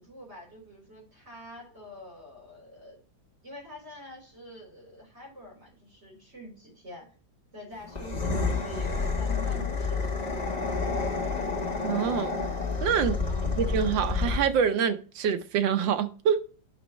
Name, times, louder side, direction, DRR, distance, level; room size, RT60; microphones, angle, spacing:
voice 1, 0.0-3.0 3.4-7.1 7.5-10.6 13.0-13.5, equal, 35° right, 4.0 m, -46 dB
sound 1, 7.9-14.7, left 4 dB, 25° left, 1.4 m, -29 dB
voice 2, 11.8-12.4 12.8-13.2 13.4-16.4, right 7 dB, 80° right, 1.5 m, -26 dB
9.6 x 6.0 x 3.1 m
omnidirectional pair, 2.0 m